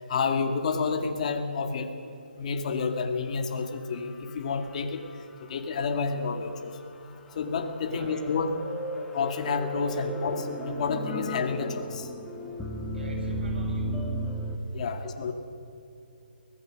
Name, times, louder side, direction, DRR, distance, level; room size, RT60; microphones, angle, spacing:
voice 1, 0.1-1.9 2.4-5.1 5.4-6.8 7.4-8.6 9.1-12.1 14.7-15.3, left 5 dB, 40° left, 5 dB, 2.1 m, -29 dB
sound 1, 3.9-5.4 5.8-5.9 7.1-14.6, equal, 5° left, 1.4 m, -35 dB
voice 2, 7.8-8.3 9.9-10.1 12.9-14.0 14.8-15.1, right 1 dB, 80° right, 2 dB, 6.8 m, -45 dB
24.5 x 17.5 x 6.5 m, 2.8 s
hypercardioid pair, 160°, 5 cm